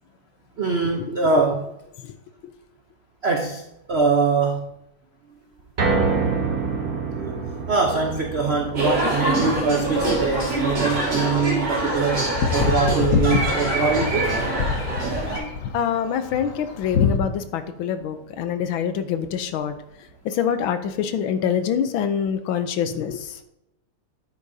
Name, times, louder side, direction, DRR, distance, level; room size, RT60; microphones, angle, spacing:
voice 1, 0.6-1.7 3.2-3.6 3.9-4.7 7.2-7.4 7.7-14.3, right 4 dB, 85° right, 2 dB, 0.5 m, -23 dB
sound 1, 5.8-18.0 18.4-18.5 19.0-19.1, right 4 dB, 35° right, 1.0 m, -30 dB
sound 2, 8.1-8.4 8.9-17.2, left 6 dB, 60° left, 0.9 m, -27 dB
sound 3, 8.8-15.4, right 2 dB, 50° right, 3.5 m, -24 dB
voice 2, 15.7-19.7 20.2-23.4, left 8 dB, 75° left, 10 dB, 1.4 m, -25 dB
9.9 x 8.5 x 2.7 m, 0.84 s
omnidirectional pair, 2.4 m